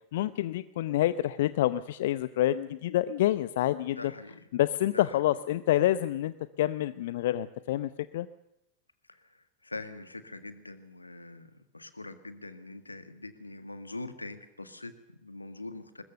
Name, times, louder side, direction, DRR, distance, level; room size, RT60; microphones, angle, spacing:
voice 1, 0.1-4.1 4.5-6.3 6.6-8.3, left 13 dB, 55° left, 15 dB, 0.7 m, -27 dB
voice 2, 3.9-4.5 4.9-5.0 9.6-16.0, left 2 dB, 80° left, 11 dB, 1.9 m, -43 dB
21.5 x 21.0 x 6.7 m, 0.87 s
figure-of-eight pair, 90°, 0 cm